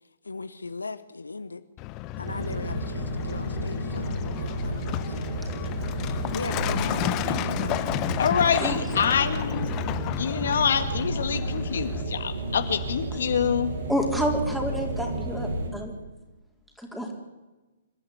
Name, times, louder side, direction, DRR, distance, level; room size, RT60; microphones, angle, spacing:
voice 1, 0.2-1.6 2.2-5.3 5.6-8.0, left 3 dB, 80° left, 12 dB, 1.0 m, -39 dB
Truck, 1.8-12.0, left 15 dB, 30° left, 1.1 m, -33 dB
sound 1, 2.2-15.7, right 1 dB, 65° right, 6.5 m, -32 dB
voice 2, 8.2-9.7 10.1-13.7, left 7 dB, 60° left, 8 dB, 2.1 m, -26 dB
voice 3, 13.9-15.9 16.8-17.1, equal, ahead, 1 dB, 4.3 m, -29 dB
27.0 x 13.0 x 9.7 m, 1.1 s
figure-of-eight pair, 120°, 0 cm